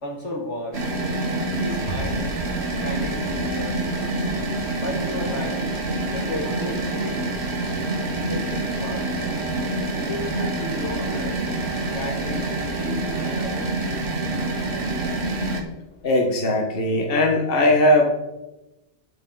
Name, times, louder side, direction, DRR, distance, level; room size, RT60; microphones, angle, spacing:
voice 1, 0.0-0.8 1.6-2.3 2.8-3.8 4.8-5.7 6.1-7.4 8.0-9.1 9.9-11.4 11.9-13.6, left 1 dB, 80° left, -1 dB, 2.2 m, -34 dB
sound 1, 0.7-15.6, right 2 dB, 65° right, 1.6 m, -26 dB
voice 2, 16.0-18.1, left 1 dB, 55° left, 1 dB, 1.4 m, -19 dB
9.7 x 8.5 x 3.9 m, 1.0 s
omnidirectional pair, 1.2 m